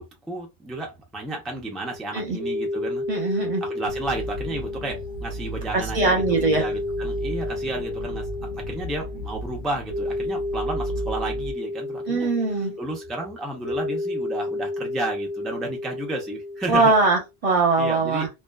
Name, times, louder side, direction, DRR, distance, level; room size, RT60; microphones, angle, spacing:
voice 1, 0.0-3.3 3.6-8.3 8.5-17.0 17.8-18.3, right 2 dB, ahead, 0.3 m, -32 dB
sound 1, 1.8-17.2, left 2 dB, 80° left, 1.1 m, -31 dB
voice 2, 3.1-3.6 5.7-6.6 12.1-12.8 16.7-18.3, right 3 dB, 35° right, 0.8 m, -21 dB
sound 2, 3.9-11.5, right 2 dB, 55° left, 0.6 m, -35 dB
2.6 x 2.2 x 2.2 m
omnidirectional pair, 1.1 m